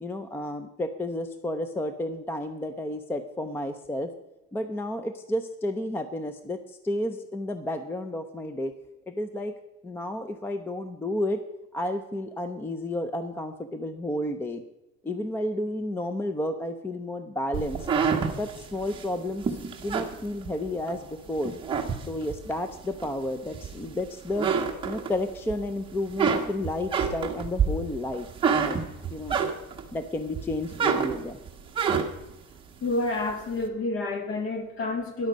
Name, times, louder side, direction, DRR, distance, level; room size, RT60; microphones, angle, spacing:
voice 1, 0.0-4.1 4.5-8.7 9.1-9.6 9.8-11.4 11.7-14.6 15.0-17.9 18.4-21.5 22.1-24.5 24.8-28.3 28.6-28.8 29.1-29.4 29.9-31.4, left 1 dB, 10° left, 10 dB, 0.4 m, -31 dB
sound 1, 17.5-21.0 21.4-22.5 23.0-24.0 24.3-25.5 25.9-29.9 30.3-32.3, right 6 dB, 15° right, 1.1 m, -27 dB
voice 2, 32.8-35.3, left 2 dB, 45° left, 6 dB, 2.0 m, -29 dB
13.5 x 10.5 x 5.1 m, 0.97 s
cardioid pair, 175°, 29 cm